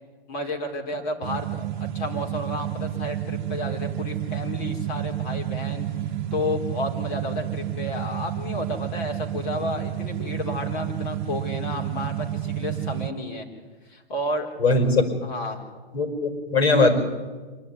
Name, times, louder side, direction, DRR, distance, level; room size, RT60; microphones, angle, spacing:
voice 1, 0.3-1.7 1.9-13.5 13.8-14.5 15.2-15.6, left 1 dB, 45° left, 2 dB, 4.1 m, -32 dB
sound 1, 1.2-13.1, right 12 dB, 45° right, 1.0 m, -30 dB
voice 2, 14.6-15.1 15.9-17.0, left 3 dB, 70° left, 5 dB, 5.2 m, -20 dB
26.0 x 12.0 x 9.8 m, 1.4 s
hypercardioid pair, 155°, 32 cm